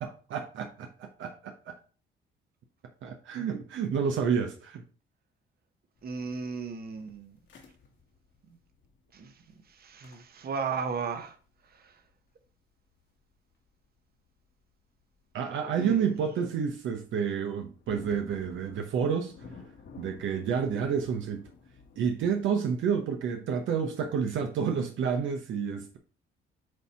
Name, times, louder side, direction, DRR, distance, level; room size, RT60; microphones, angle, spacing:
voice 1, 0.0-1.7 3.0-4.8 15.3-19.3 20.0-21.5 22.0-26.0, right 7 dB, 75° right, 0.8 m, -29 dB
sound 1, 5.9-14.0 14.2-14.4 15.0-15.3 15.7-16.1 16.5-16.6 16.8-22.7, left 4 dB, 65° left, 1.6 m, -52 dB
voice 2, 6.0-7.3 9.1-9.3 9.8-11.3 15.8-16.1, right 5 dB, 50° right, 1.1 m, -35 dB
7.8 x 2.8 x 4.3 m
cardioid pair, 90°, 20 cm